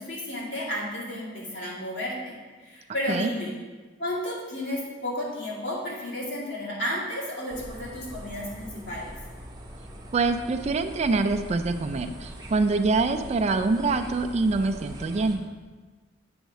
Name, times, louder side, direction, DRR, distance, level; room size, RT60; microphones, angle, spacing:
voice 1, 0.0-2.4 2.6-3.5 4.0-9.1, left 1 dB, 75° left, -6 dB, 2.1 m, -32 dB
sound 1, 7.5-15.4, equal, 20° right, 0.9 m, -42 dB
voice 2, 10.1-15.4, right 3 dB, 35° right, 8 dB, 0.3 m, -25 dB
7.8 x 3.2 x 6.3 m, 1.3 s
head